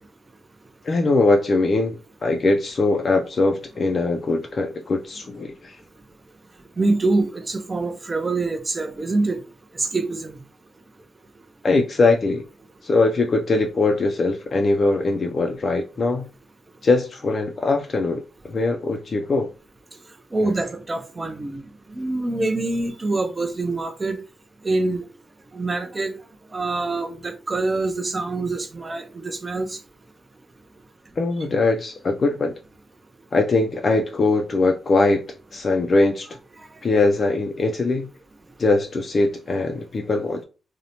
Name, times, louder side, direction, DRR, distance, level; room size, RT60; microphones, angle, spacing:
voice 1, 0.8-5.8 11.6-12.5 12.8-16.3 16.8-19.5 20.4-20.5 31.2-32.5 33.3-36.4 36.8-38.1 38.6-40.4, left 3 dB, 45° left, 0.3 m, -21 dB
voice 2, 6.8-9.4 9.7-10.4 20.3-21.6 21.9-24.2 24.6-25.0 25.5-26.1 26.5-29.8, right 2 dB, 25° right, 0.4 m, -25 dB
2.7 x 2.1 x 2.8 m
cardioid pair, 100°, 0 cm